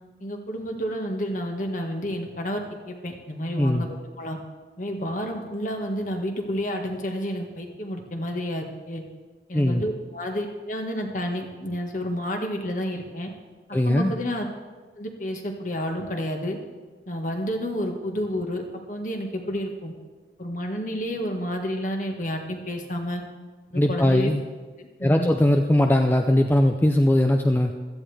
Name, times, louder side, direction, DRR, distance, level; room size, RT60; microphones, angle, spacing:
voice 1, 0.2-4.4 4.8-9.0 9.5-13.3 13.7-14.5 15.0-16.6 17.1-18.6 18.9-19.9 20.4-23.2 23.7-24.3 24.8-25.4, equal, 45° left, 3 dB, 1.6 m, -30 dB
voice 2, 3.6-3.9 9.5-9.8 13.7-14.1 23.7-24.4 25.0-27.7, left 1 dB, 10° left, 4 dB, 0.5 m, -20 dB
16.0 x 13.5 x 3.4 m, 1.4 s
head